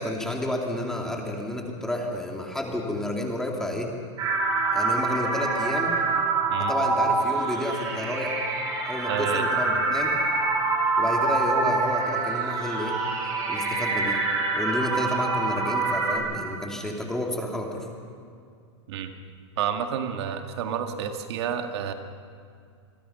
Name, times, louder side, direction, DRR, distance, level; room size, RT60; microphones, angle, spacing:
voice 1, 0.0-3.9 4.7-5.9 6.6-8.4 8.8-10.2 11.0-13.0 13.5-14.2 14.5-17.9, left 1 dB, 5° left, 0 dB, 2.6 m, -30 dB
sound 1, 4.2-16.2, right 3 dB, 25° right, 7.4 m, -25 dB
voice 2, 6.5-6.9 9.1-9.5 18.9-19.1 19.6-21.9, right 8 dB, 60° right, 5 dB, 2.0 m, -30 dB
28.0 x 21.5 x 5.7 m, 2.3 s
supercardioid pair, 155°, 15 cm